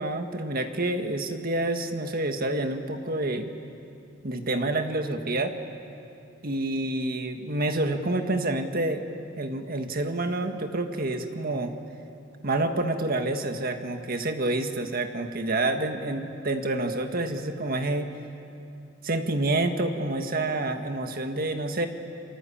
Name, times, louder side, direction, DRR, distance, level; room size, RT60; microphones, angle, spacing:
voice 1, 0.0-3.5 4.2-5.5 6.4-9.0 9.4-11.8 12.4-18.1 19.0-21.9, right 2 dB, 50° right, 6 dB, 1.8 m, -28 dB
28.0 x 23.5 x 8.7 m, 2.8 s
head